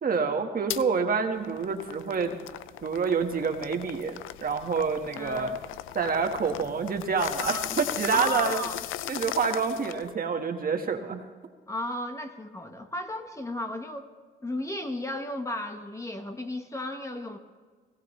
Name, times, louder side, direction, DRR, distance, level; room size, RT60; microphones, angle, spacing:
voice 1, 0.0-2.4 2.8-5.5 5.9-8.6 9.1-11.2, right 5 dB, 45° right, 4 dB, 1.6 m, -27 dB
sound 1, 0.7-0.8 1.3-10.1, left 13 dB, 90° left, 0.5 m, -37 dB
voice 2, 5.2-5.6 7.4-7.8 8.1-8.8 11.7-14.1 14.4-17.4, left 1 dB, 15° left, 5 dB, 1.2 m, -34 dB
18.0 x 17.5 x 3.2 m, 1.5 s
cardioid pair, 90°, 20 cm